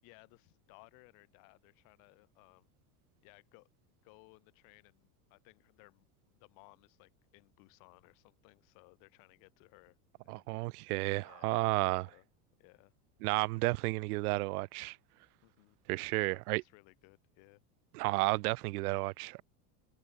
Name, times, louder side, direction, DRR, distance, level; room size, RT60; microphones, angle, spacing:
voice 1, 0.0-2.7 3.2-3.7 4.0-6.1 6.3-10.5 11.2-11.6 12.1-12.3 12.6-12.9 15.4-15.8 16.3-17.6, left 34 dB, 50° left, 5.8 m, -61 dB
voice 2, 10.3-12.1 13.2-15.0 15.9-16.6 17.9-19.4, right 23 dB, 90° right, 0.7 m, -32 dB
supercardioid pair, 175°, 43 cm